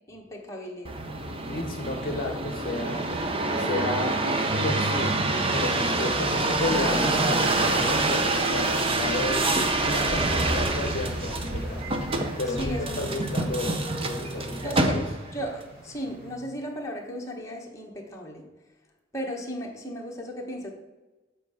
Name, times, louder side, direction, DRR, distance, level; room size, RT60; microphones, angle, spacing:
voice 1, 0.1-1.0 12.5-13.0 14.6-15.0 15.3-18.5 19.1-20.7, equal, 15° left, -2 dB, 1.2 m, -35 dB
sound 1, 0.8-15.4 16.0-16.5, right 2 dB, 30° right, 0.7 m, -26 dB
voice 2, 1.5-3.0 3.6-4.2 4.6-5.2 5.5-9.5 9.8-11.8 12.4-15.0, left 2 dB, 50° left, 2 dB, 0.8 m, -33 dB
sound 2, 10.1-16.3, equal, 50° right, 2.0 m, -39 dB
7.5 x 4.5 x 4.9 m, 1.2 s
head